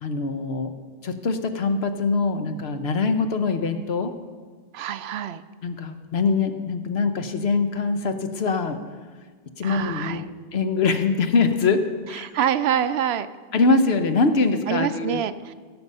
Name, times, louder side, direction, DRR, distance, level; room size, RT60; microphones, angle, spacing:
voice 1, 0.0-0.7 1.0-4.1 5.6-8.8 9.6-10.2 10.5-12.3 13.5-15.2, left 4 dB, 80° left, 8 dB, 1.1 m, -23 dB
voice 2, 4.7-5.4 9.6-10.3 12.1-13.3 14.7-15.5, right 9 dB, 85° right, 13 dB, 0.8 m, -26 dB
16.0 x 7.0 x 5.5 m, 1.5 s
omnidirectional pair, 1.0 m